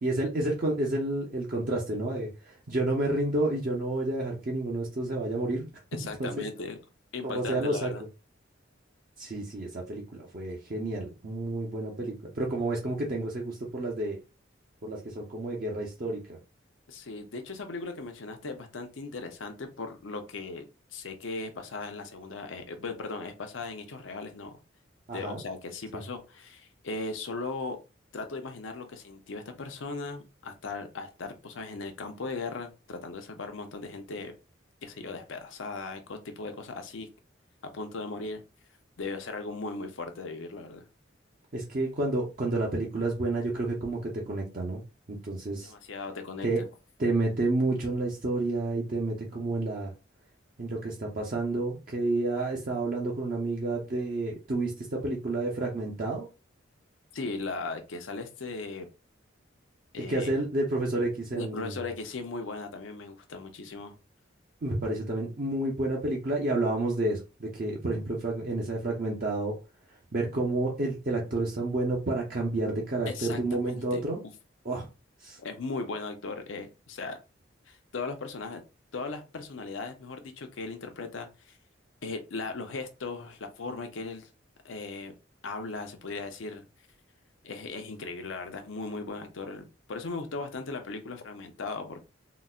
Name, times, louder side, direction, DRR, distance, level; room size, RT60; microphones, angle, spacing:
voice 1, 0.0-5.7 6.2-6.3 7.2-7.9 9.2-14.2 14.8-16.4 25.1-25.4 25.9-26.0 41.5-44.8 45.1-45.7 46.4-46.6 47.0-49.9 50.6-56.3 60.1-61.8 64.6-69.6 70.1-74.2 74.6-74.9 75.2-75.4, right 2 dB, 45° right, -2 dB, 0.6 m, -30 dB
voice 2, 5.9-6.8 7.1-8.0 16.9-20.6 20.9-24.5 25.1-27.8 28.1-34.3 34.8-37.1 37.7-38.4 39.0-40.9 45.6-46.7 57.1-58.9 59.9-60.3 61.3-64.0 73.1-74.0 75.4-77.2 77.7-78.6 78.9-81.5 82.0-84.3 84.6-85.1 85.4-86.7 87.4-92.0, left 3 dB, 80° left, 6 dB, 0.6 m, -38 dB
3.9 x 2.1 x 2.3 m, 0.29 s
head